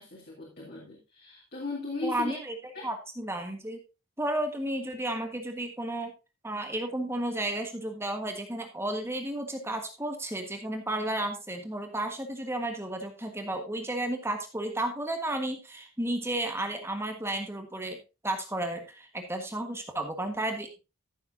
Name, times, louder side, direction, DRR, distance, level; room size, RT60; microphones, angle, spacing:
voice 1, 0.0-2.4 2.7-2.9, left 2 dB, 45° left, -4 dB, 3.3 m, -37 dB
voice 2, 2.0-3.8 4.2-6.1 6.4-18.0 18.2-20.8, right 1 dB, 10° right, 5 dB, 1.5 m, -33 dB
14.5 x 7.5 x 2.7 m, 0.29 s
head